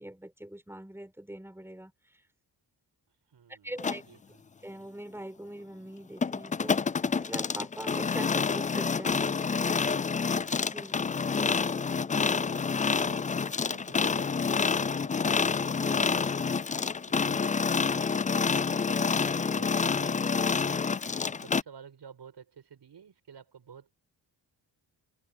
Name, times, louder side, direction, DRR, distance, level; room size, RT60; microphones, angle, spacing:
voice 1, 0.0-1.9 3.5-4.0 4.6-9.2 10.6-11.0 15.7-16.3, right 1 dB, 5° right, 4.8 m, -42 dB
voice 2, 3.3-4.4 9.0-9.5 11.3-16.2 16.5-23.9, right 7 dB, 65° right, 5.2 m, -52 dB
sound 1, 3.8-4.0 6.2-21.6, left 5 dB, 20° left, 0.3 m, -28 dB
cardioid pair, 80°, 44 cm